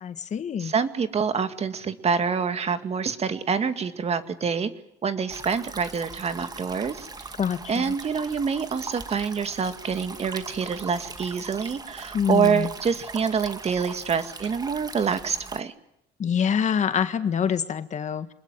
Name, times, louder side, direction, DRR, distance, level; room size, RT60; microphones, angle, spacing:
voice 1, 0.0-0.7 7.4-7.9 12.1-12.7 16.2-18.3, left 7 dB, 45° left, 10 dB, 1.7 m, -26 dB
voice 2, 0.6-4.7 5.0-7.1 7.7-15.7, right 6 dB, 40° right, 9 dB, 2.2 m, -26 dB
sound 1, 5.3-15.6, right 3 dB, 25° right, 1.8 m, -40 dB
26.0 x 21.0 x 9.4 m, 0.76 s
cardioid pair, 110°, 17 cm